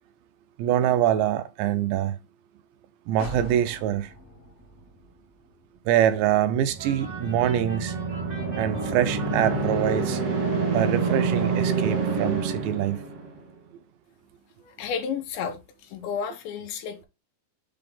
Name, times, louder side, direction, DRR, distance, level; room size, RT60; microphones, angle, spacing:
voice 1, 0.6-2.2 3.1-4.1 5.9-8.0 8.6-10.2 10.7-13.0, right 11 dB, 85° right, 2.9 m, -24 dB
sound 1, 3.2-6.9 7.3-7.4, equal, 45° left, 0.8 m, -44 dB
sound 2, 6.5-13.5, right 4 dB, 65° right, 1.5 m, -27 dB
sound 3, 6.8-10.3, right 4 dB, 40° right, 0.5 m, -44 dB
voice 2, 14.6-17.1, left 7 dB, 80° left, 3.5 m, -32 dB
7.6 x 3.8 x 3.5 m
omnidirectional pair, 5.2 m